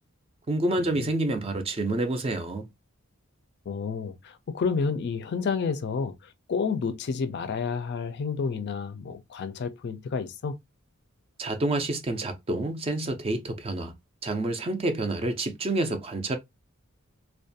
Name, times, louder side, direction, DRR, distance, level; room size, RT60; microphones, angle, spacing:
voice 1, 0.5-2.7 11.4-13.9 14.2-16.4, right 2 dB, 25° right, 0.4 m, -28 dB
voice 2, 3.7-10.6, left 5 dB, 50° left, 0.4 m, -30 dB
2.4 x 2.2 x 2.5 m
head